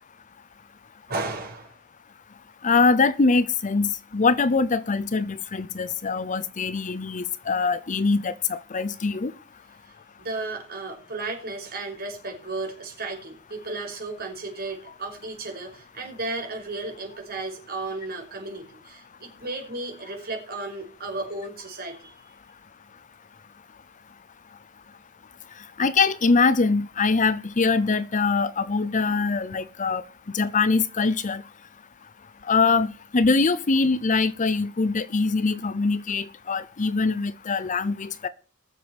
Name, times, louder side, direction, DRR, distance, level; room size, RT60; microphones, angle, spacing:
voice 1, 1.1-1.8 10.2-22.1, right 2 dB, 50° right, 5.6 m, -34 dB
voice 2, 2.6-9.3 25.8-30.0 30.3-31.4 32.5-38.3, left 4 dB, 40° left, 0.7 m, -23 dB
19.5 x 7.2 x 6.0 m
head